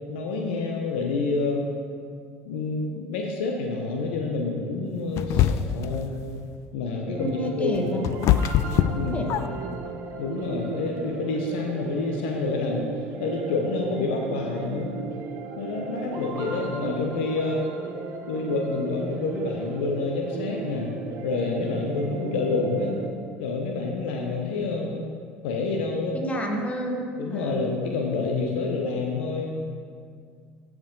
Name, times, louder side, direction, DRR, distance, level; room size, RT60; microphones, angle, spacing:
voice 1, 0.1-1.6 2.4-6.2 6.7-8.1 8.9-9.2 10.2-12.9 13.2-15.0 15.6-17.6 18.3-20.9 21.2-23.0 23.4-24.9 25.4-26.2 27.2-29.7, left 3 dB, 75° left, 1 dB, 0.9 m, -28 dB
sound 1, 5.2-5.9 7.5-9.8, left 11 dB, 55° left, 0.3 m, -23 dB
sound 2, 7.1-23.1, right 5 dB, 55° right, 0.9 m, -36 dB
voice 2, 7.2-8.0 9.1-9.3 26.1-27.7, equal, 20° left, 1 dB, 1.5 m, -30 dB
13.5 x 4.9 x 3.9 m, 2.1 s
hypercardioid pair, 70°, 6 cm